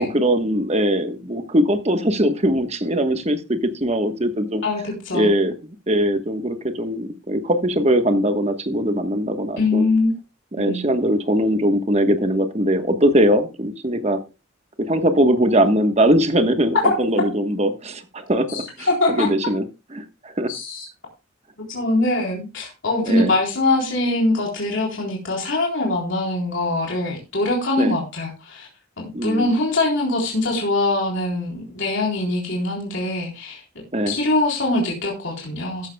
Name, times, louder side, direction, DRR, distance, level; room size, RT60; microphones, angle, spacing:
voice 1, 0.0-4.6 5.1-9.9 10.5-14.2 14.8-19.6 19.9-20.5 23.1-23.3 27.8-27.9 29.1-29.5 33.9-34.2, equal, 30° right, 8 dB, 1.2 m, -21 dB
voice 2, 4.6-5.3 9.6-10.1 10.6-10.8 18.5-19.3 20.5-20.9 21.7-28.7 29.0-33.6 34.1-35.9, left 2 dB, 60° left, -2 dB, 3.7 m, -23 dB
14.0 x 11.5 x 2.3 m, 0.28 s
head